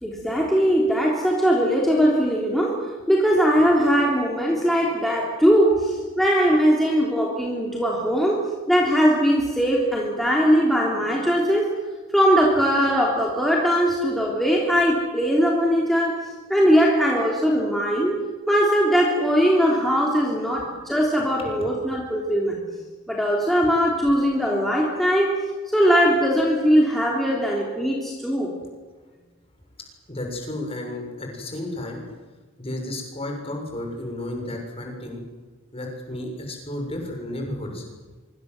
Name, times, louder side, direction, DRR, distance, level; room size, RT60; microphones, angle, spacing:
voice 1, 0.0-11.7 12.1-16.2 16.5-22.6 23.1-25.4 25.7-28.5, equal, ahead, -2 dB, 3.4 m, -20 dB
voice 2, 30.1-32.0 32.6-35.2 35.7-37.8, left 1 dB, 30° left, 2 dB, 6.9 m, -32 dB
25.0 x 25.0 x 7.9 m, 1.3 s
head